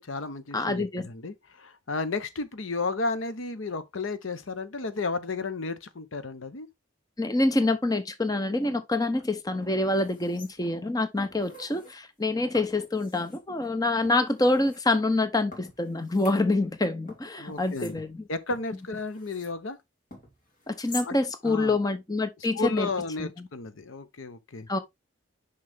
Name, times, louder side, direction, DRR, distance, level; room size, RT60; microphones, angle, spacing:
voice 1, 0.0-6.7 17.4-18.0 18.3-19.8 21.0-21.2 21.4-21.8 22.5-24.7, left 3 dB, 85° left, 0.9 m, -33 dB
voice 2, 0.5-1.1 7.2-18.2 20.7-22.9 23.2-23.3 24.7-24.8, left 2 dB, 20° left, 0.8 m, -26 dB
sound 1, 9.1-9.2 9.6-10.8 11.2-12.0 12.5-13.4 14.0-14.8 15.5-16.8 17.1-19.6 20.1-21.1 21.5-21.6, left 2 dB, 45° left, 2.7 m, -47 dB
6.3 x 5.6 x 3.5 m
head